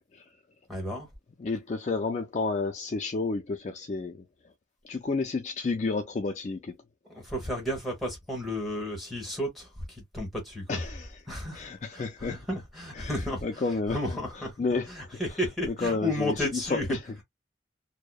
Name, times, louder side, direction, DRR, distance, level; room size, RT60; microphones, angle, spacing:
voice 1, 0.7-1.1 7.1-10.8 11.3-11.7 11.9-13.6 13.9-14.6 14.9-17.0, left 1 dB, ahead, 1.1 m, -33 dB
voice 2, 1.4-4.2 4.8-6.7 10.7-11.1 11.5-12.4 12.9-13.2 13.4-14.2 14.6-14.9 15.7-17.0, left 3 dB, 40° left, 0.3 m, -30 dB
2.7 x 2.0 x 2.3 m
head